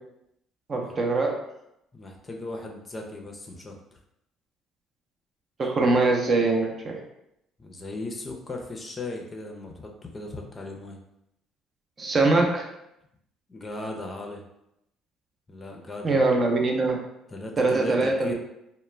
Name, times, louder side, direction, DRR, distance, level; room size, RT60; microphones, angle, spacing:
voice 1, 0.7-1.4 5.6-7.0 12.0-12.7 16.0-17.0 17.6-18.3, right 3 dB, 40° right, 1 dB, 0.6 m, -22 dB
voice 2, 1.9-3.7 5.8-5.9 7.6-11.0 13.5-14.4 15.5-16.1 17.3-18.3, left 2 dB, 30° left, 1 dB, 0.5 m, -37 dB
2.2 x 2.1 x 3.2 m, 0.82 s
supercardioid pair, 70°, 0 cm